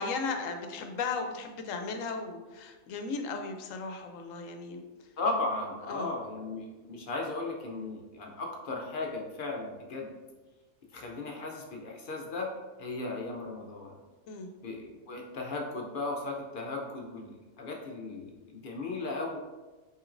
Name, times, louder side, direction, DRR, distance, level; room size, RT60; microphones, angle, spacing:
voice 1, 0.0-4.8 5.9-6.1 14.3-14.5, left 4 dB, 75° left, 5 dB, 0.9 m, -36 dB
voice 2, 5.2-10.1 10.9-12.5 12.8-14.0 14.6-19.4, left 2 dB, 55° left, 0 dB, 0.6 m, -36 dB
5.8 x 3.1 x 2.5 m, 1.2 s
omnidirectional pair, 1.4 m